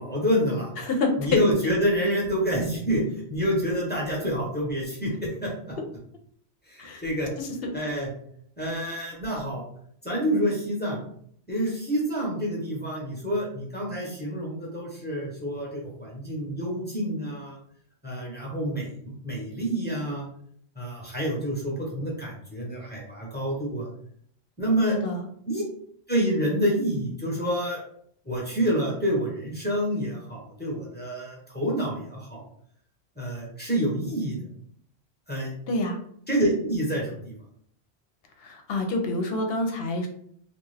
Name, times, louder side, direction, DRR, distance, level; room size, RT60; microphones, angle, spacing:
voice 1, 0.0-0.7 1.2-3.0 3.3-5.7 6.7-7.3 7.7-8.1 8.6-9.6 10.0-11.0 11.5-17.6 18.0-20.2 20.8-23.9 24.6-25.0 25.5-25.6 26.1-27.8 28.2-32.4 33.2-34.4 35.3-35.5 36.3-37.3, equal, 10° left, -4 dB, 0.7 m, -28 dB
voice 2, 0.8-1.7 6.8-7.0 7.4-7.7 24.9-25.2 35.7-36.0 38.4-40.1, left 2 dB, 70° left, 3 dB, 0.8 m, -27 dB
2.5 x 2.3 x 3.2 m, 0.64 s
omnidirectional pair, 1.1 m